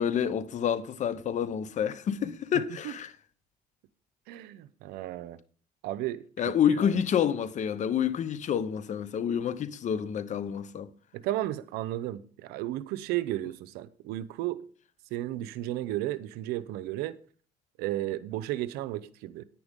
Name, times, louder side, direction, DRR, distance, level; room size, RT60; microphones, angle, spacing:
voice 1, 0.0-3.1 6.4-10.9, left 8 dB, 50° left, 0.9 m, -28 dB
voice 2, 2.5-3.0 4.3-5.4 5.8-6.2 6.7-6.9 11.1-14.7 15.1-17.2 17.8-19.5, right 14 dB, 90° right, 0.7 m, -34 dB
10.0 x 9.7 x 3.6 m
cardioid pair, 100°, 16 cm